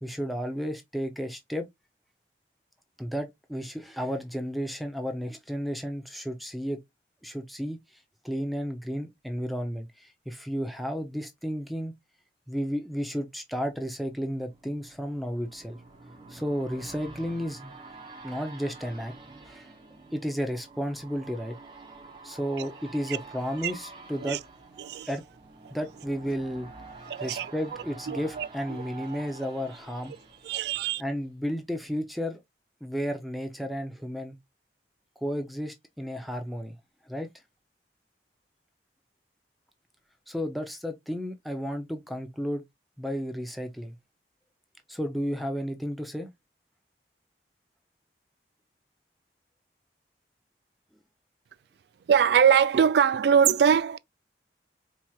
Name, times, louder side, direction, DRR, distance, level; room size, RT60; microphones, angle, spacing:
voice 1, 0.0-1.7 3.0-6.8 7.2-11.9 12.5-15.8 16.3-17.7 18.2-19.1 19.4-19.7 20.1-21.6 22.2-24.4 25.1-25.2 25.7-26.7 27.2-30.1 31.0-32.4 32.8-34.4 35.2-36.7 37.1-37.3 40.3-42.6 43.0-44.0 44.9-46.3, equal, ahead, 0.5 m, -33 dB
sound 1, 13.7-31.5 31.9-32.0, right 3 dB, 25° right, 0.9 m, -48 dB
voice 2, 27.1-27.5 28.1-28.8 30.4-31.0 52.1-54.0, right 7 dB, 70° right, 0.3 m, -22 dB
4.4 x 2.9 x 2.2 m
head